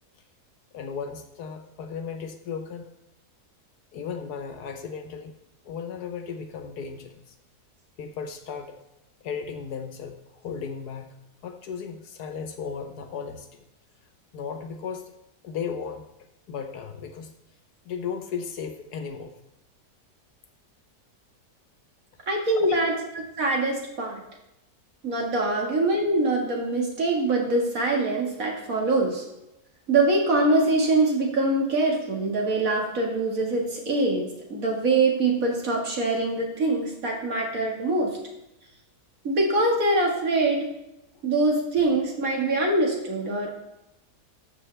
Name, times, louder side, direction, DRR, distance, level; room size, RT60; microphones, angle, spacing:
voice 1, 0.7-2.9 3.9-5.4 5.6-7.3 8.0-8.7 9.2-11.1 11.4-13.5 14.3-15.1 15.4-16.0 16.5-17.3 17.8-19.3 22.6-22.7 25.5-25.6 41.1-41.2, left 6 dB, 80° left, 6 dB, 1.5 m, -35 dB
voice 2, 22.3-22.9 23.4-24.2 25.0-29.3 29.9-38.2 39.2-40.7 41.2-43.5, right 2 dB, 60° right, 0 dB, 2.2 m, -24 dB
13.0 x 6.8 x 3.4 m, 0.90 s
omnidirectional pair, 1.7 m